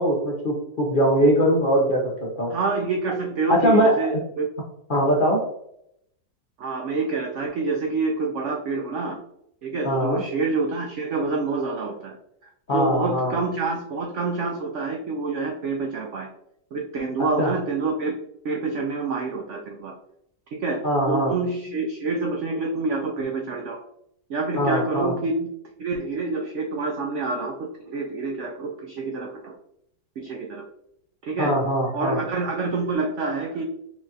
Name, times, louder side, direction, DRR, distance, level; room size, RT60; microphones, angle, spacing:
voice 1, 0.0-2.5 3.5-4.0 4.9-5.4 9.8-10.2 12.7-13.4 17.4-17.5 20.8-21.3 24.5-25.1 31.4-32.2, equal, 70° left, -2 dB, 0.5 m, -21 dB
voice 2, 2.5-4.5 6.6-9.2 9.6-12.1 12.4-16.3 16.7-18.1 18.4-19.9 20.6-20.8 21.1-23.8 24.3-25.5 25.8-29.6 30.2-30.6 31.2-31.5 31.9-33.6, right 3 dB, 80° right, 1 dB, 0.6 m, -27 dB
5.9 x 2.4 x 2.7 m, 0.75 s
omnidirectional pair, 1.8 m